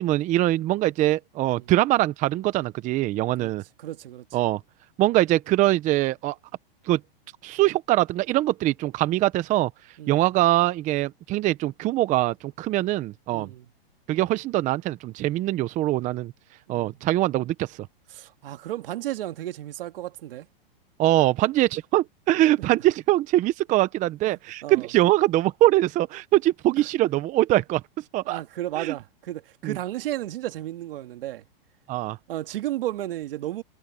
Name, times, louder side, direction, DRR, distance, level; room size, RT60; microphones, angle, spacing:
voice 1, 0.0-3.6 4.3-4.6 5.0-6.4 6.9-7.0 7.4-9.7 10.1-13.5 14.1-16.3 16.7-17.8 21.0-27.8 28.1-28.4 28.8-28.9 29.6-29.8 31.9-32.2, right 16 dB, 25° right, 0.8 m, -23 dB
voice 2, 3.8-4.3 10.0-10.2 13.3-13.7 16.7-17.0 18.1-20.5 24.3-24.9 28.3-31.4 32.3-33.6, right 14 dB, 70° right, 1.9 m, -33 dB
hypercardioid pair, 140°, 29 cm